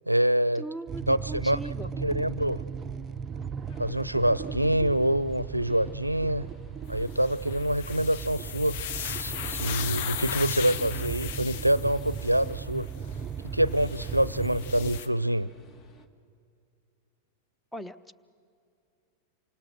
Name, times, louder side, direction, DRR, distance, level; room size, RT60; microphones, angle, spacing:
voice 1, 0.1-0.6 1.1-1.6 2.0-2.6 3.8-6.5 6.9-12.9 13.5-15.5, right 1 dB, 90° right, 19 dB, 0.5 m, -26 dB
voice 2, 0.6-1.9 17.7-18.1, right 1 dB, 5° left, 13 dB, 0.8 m, -39 dB
sound 1, 0.9-15.0, right 6 dB, 25° right, 0.5 m, -37 dB
sound 2, 3.7-16.1, left 3 dB, 30° left, 1.6 m, -54 dB
sound 3, 7.1-12.6 13.7-15.1, left 10 dB, 50° left, 1.0 m, -37 dB
28.0 x 25.5 x 6.4 m, 2.4 s
figure-of-eight pair, 90°, 0 cm